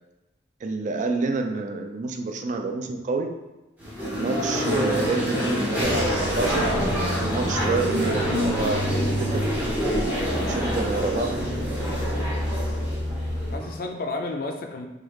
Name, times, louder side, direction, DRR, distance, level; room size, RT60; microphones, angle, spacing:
voice 1, 0.6-3.3 4.1-6.7 7.2-9.4 10.2-11.5, right 3 dB, 40° right, 5 dB, 0.3 m, -28 dB
sound 1, 3.8-13.8, equal, 10° right, 0.7 m, -27 dB
sound 2, 5.8-13.6, equal, 60° right, 1.1 m, -30 dB
voice 2, 10.0-10.6 11.9-12.2 13.5-14.9, left 2 dB, 50° left, 4 dB, 0.4 m, -32 dB
3.2 x 2.3 x 3.1 m, 1.0 s
head